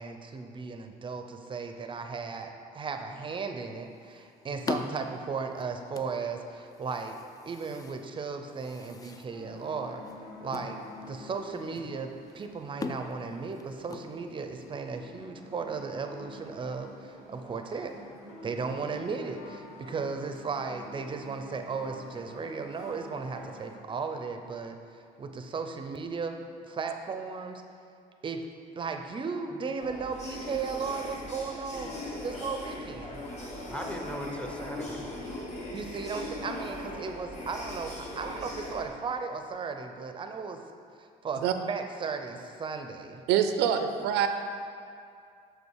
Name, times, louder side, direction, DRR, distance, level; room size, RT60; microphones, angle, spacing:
voice 1, 0.0-7.2 7.5-10.0 10.4-10.8 11.1-17.9 18.4-27.6 28.2-28.4 28.8-33.2 35.7-40.6 41.0-43.2, right 5 dB, 30° right, 6 dB, 0.5 m, -36 dB
sound 1, 3.6-14.7, left 4 dB, 20° left, 0.3 m, -43 dB
voice 2, 4.5-5.1 29.5-29.6 33.7-35.0, equal, 5° left, 1 dB, 0.7 m, -39 dB
sound 2, 9.3-23.8, left 1 dB, 80° left, 1.6 m, -48 dB
sound 3, 29.8-38.9, left 1 dB, 45° left, 1.3 m, -40 dB
voice 3, 43.3-44.3, right 9 dB, 90° right, 8 dB, 0.5 m, -25 dB
6.1 x 5.3 x 4.7 m, 2.3 s
cardioid pair, 110°, 17 cm